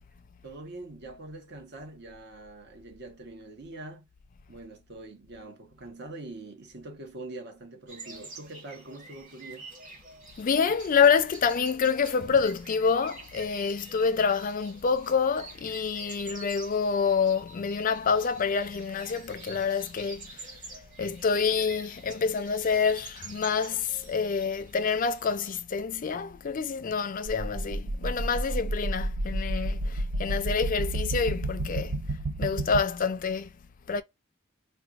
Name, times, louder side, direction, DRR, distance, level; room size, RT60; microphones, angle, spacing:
voice 1, 0.4-4.1 4.5-9.7, right 2 dB, 60° right, 1.0 m, -44 dB
sound 1, 7.9-25.6, right 3 dB, 40° right, 1.3 m, -47 dB
voice 2, 10.4-20.5 21.0-32.0 32.4-33.5 33.9-34.0, left 5 dB, 45° left, 0.4 m, -27 dB
sound 2, 27.3-32.8, right 1 dB, 80° right, 0.5 m, -31 dB
4.4 x 2.2 x 2.3 m
head